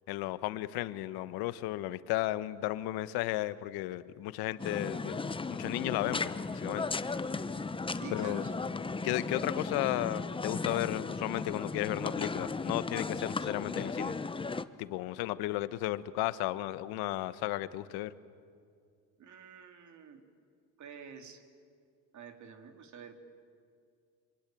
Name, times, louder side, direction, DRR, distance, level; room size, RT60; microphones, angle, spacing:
voice 1, 0.1-5.2 5.5-6.9 8.1-8.4 9.0-14.1 14.8-18.1, left 16 dB, 75° left, 15 dB, 1.2 m, -34 dB
sound 1, 4.6-14.6, left 4 dB, 15° left, 0.8 m, -36 dB
voice 2, 8.0-8.5 19.2-20.2 20.8-21.4 22.1-23.1, right 6 dB, 50° right, 5 dB, 3.3 m, -48 dB
26.5 x 24.0 x 9.1 m, 2.2 s
supercardioid pair, 95°, 38 cm